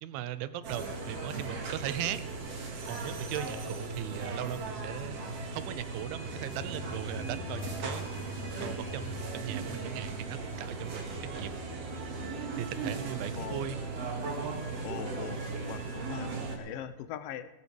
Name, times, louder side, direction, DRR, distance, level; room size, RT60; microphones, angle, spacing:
voice 1, 0.0-2.2 2.9-5.2 5.5-8.1 8.6-11.5 12.4-13.8, right 12 dB, 80° right, 13 dB, 2.4 m, -38 dB
sound 1, 0.6-16.6, right 3 dB, 45° right, 2.7 m, -37 dB
sound 2, 6.6-14.7, left 1 dB, 55° left, 6.4 m, -47 dB
voice 2, 13.4-13.7 14.8-17.5, left 10 dB, 80° left, 11 dB, 2.0 m, -41 dB
18.5 x 15.0 x 3.4 m, 1.2 s
omnidirectional pair, 4.5 m